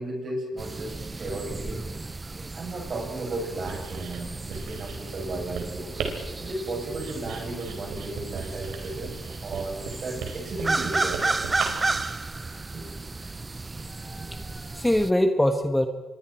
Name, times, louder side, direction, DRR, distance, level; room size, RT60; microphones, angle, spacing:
voice 1, 0.0-1.8 2.5-5.9 6.4-9.1 9.4-11.2 12.7-12.8 14.2-14.3, right 2 dB, 50° right, 0 dB, 8.0 m, -34 dB
sound 1, 0.6-15.1, right 3 dB, 20° right, 0.7 m, -33 dB
Writing, 3.5-12.1, right 6 dB, 90° right, 4.0 m, -38 dB
voice 2, 13.9-15.9, left 1 dB, 10° left, 6 dB, 1.4 m, -24 dB
27.5 x 23.0 x 4.5 m, 1.2 s
cardioid pair, 90°, 0 cm